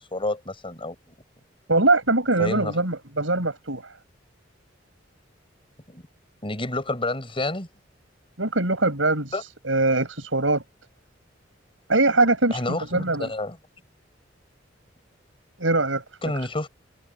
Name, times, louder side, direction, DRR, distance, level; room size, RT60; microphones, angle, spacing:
voice 1, 0.1-1.0 2.4-2.8 5.9-6.0 6.4-7.7 9.3-9.4 12.5-13.6 16.2-16.7, left 2 dB, 30° left, 6.0 m, -29 dB
voice 2, 1.7-3.9 8.4-9.3 9.6-10.6 11.9-13.3 15.6-16.0, right 2 dB, 90° right, 7.4 m, -22 dB
head